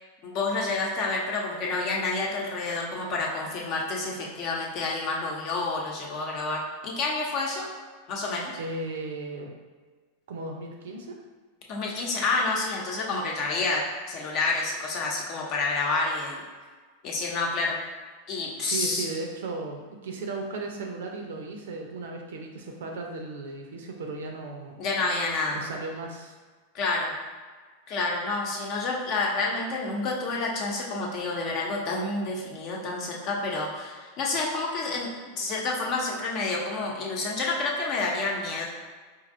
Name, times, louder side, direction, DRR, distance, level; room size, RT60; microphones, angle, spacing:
voice 1, 0.2-7.7 8.1-8.5 11.7-13.8 14.1-16.4 17.0-17.8 18.3-19.1 24.8-25.6 26.7-27.1 27.9-35.1 35.4-38.6, left 3 dB, 45° left, -2 dB, 0.8 m, -29 dB
voice 2, 8.6-9.5 10.3-11.2 18.6-24.8 25.5-26.4, right 3 dB, 70° right, 2 dB, 0.6 m, -36 dB
4.5 x 2.6 x 2.6 m, 1.4 s
hypercardioid pair, 90°, 0 cm